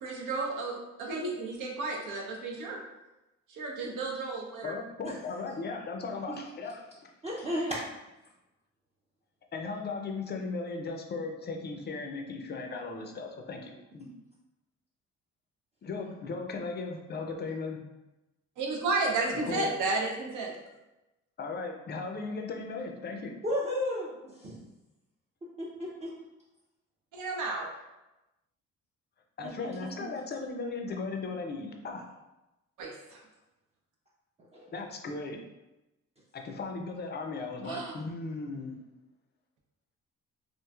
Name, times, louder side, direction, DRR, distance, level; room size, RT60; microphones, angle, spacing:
voice 1, 0.0-2.8 3.5-4.7 18.6-20.5 27.1-27.7 32.8-33.2 37.6-37.9, right 3 dB, 75° right, 0 dB, 0.7 m, -32 dB
voice 2, 4.6-7.1 9.5-14.1 15.8-17.8 19.3-19.7 21.4-23.3 29.4-32.1 34.7-35.4 36.3-38.8, left 4 dB, 35° left, 3 dB, 0.4 m, -37 dB
voice 3, 7.2-7.8 23.4-24.6 25.6-26.1 29.6-29.9 34.5-34.7, left 1 dB, 20° right, -6 dB, 0.5 m, -33 dB
3.0 x 2.5 x 2.3 m, 0.99 s
cardioid pair, 90°, 30 cm